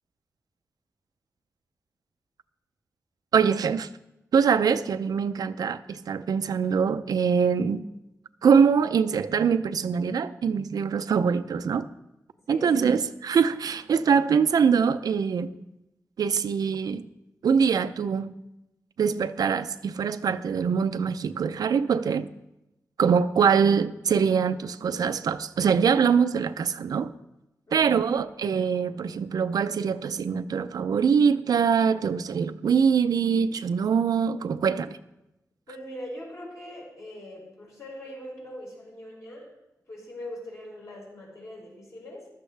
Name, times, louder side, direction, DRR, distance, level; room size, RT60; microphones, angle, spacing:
voice 1, 3.3-3.9 4.3-7.9 8.4-11.9 12.5-15.5 16.2-17.1 17.4-18.3 19.0-22.3 23.0-27.1 27.7-35.0, right 6 dB, 80° right, 0.5 m, -23 dB
voice 2, 12.5-13.0 27.7-28.1 35.7-39.5 39.9-42.3, left 1 dB, 50° left, 5.3 m, -41 dB
15.0 x 12.5 x 3.4 m
wide cardioid pair, 145°, 6 cm